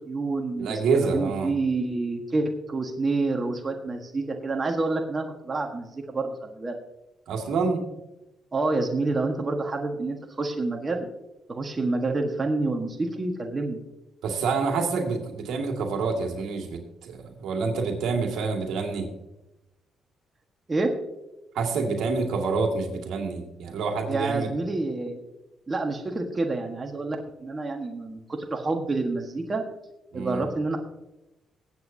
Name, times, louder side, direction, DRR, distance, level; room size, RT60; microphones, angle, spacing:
voice 1, 0.1-0.8 1.1-6.8 8.5-11.1 11.5-13.8 20.7-20.9 24.1-25.2 25.7-29.6 30.1-30.8, right 3 dB, 30° right, 2 dB, 1.4 m, -28 dB
voice 2, 0.6-1.5 7.3-7.9 14.2-19.1 21.5-24.5 30.1-30.4, right 4 dB, 80° right, 2 dB, 2.1 m, -27 dB
22.0 x 8.2 x 2.8 m, 0.95 s
cardioid pair, 90°, 0 cm